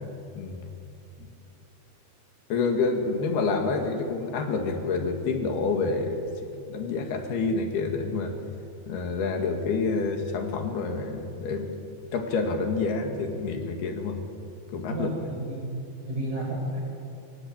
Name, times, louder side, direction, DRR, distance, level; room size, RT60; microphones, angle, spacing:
voice 1, 0.3-0.7 1.2-1.3 2.5-6.2 6.7-8.3 8.9-11.7 12.1-14.2 14.7-15.2, left 4 dB, 80° left, 4 dB, 4.0 m, -28 dB
voice 2, 14.9-15.8 16.0-16.8, right 1 dB, 50° right, -1 dB, 7.5 m, -31 dB
24.0 x 19.5 x 8.7 m, 2.6 s
omnidirectional pair, 4.4 m